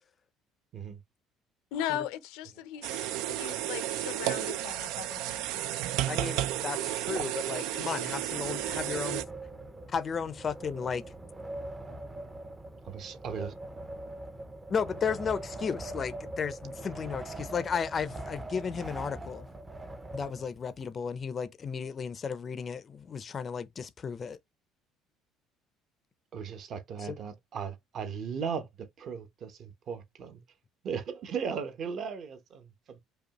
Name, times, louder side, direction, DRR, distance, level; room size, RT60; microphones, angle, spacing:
voice 1, 1.7-5.5, left 11 dB, 90° left, 0.6 m, -38 dB
sound 1, 2.8-9.2, right 13 dB, 80° right, 0.4 m, -32 dB
voice 2, 6.1-9.2 9.9-11.0 14.7-19.5 20.1-24.4 27.1-27.2, left 6 dB, 30° left, 0.5 m, -34 dB
Wind, 8.2-20.8, right 2 dB, 15° right, 0.6 m, -42 dB
voice 3, 12.9-13.5 26.3-30.4 30.8-33.0, right 6 dB, 45° right, 0.9 m, -37 dB
5.2 x 2.3 x 2.9 m
cardioid pair, 140°, 0 cm